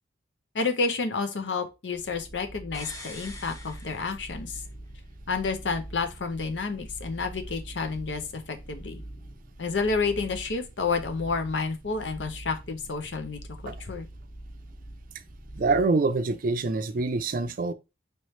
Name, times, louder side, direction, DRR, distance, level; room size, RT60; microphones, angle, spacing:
voice 1, 0.5-4.6 5.3-9.0 9.6-14.1, left 4 dB, 80° left, 0.7 m, -30 dB
sound 1, 1.9-15.8, right 1 dB, 45° left, 1.4 m, -44 dB
sound 2, 2.7-4.7 5.0-5.1, left 2 dB, 20° left, 0.7 m, -44 dB
voice 2, 15.5-17.7, right 3 dB, 50° right, 0.4 m, -25 dB
4.5 x 3.1 x 3.1 m
head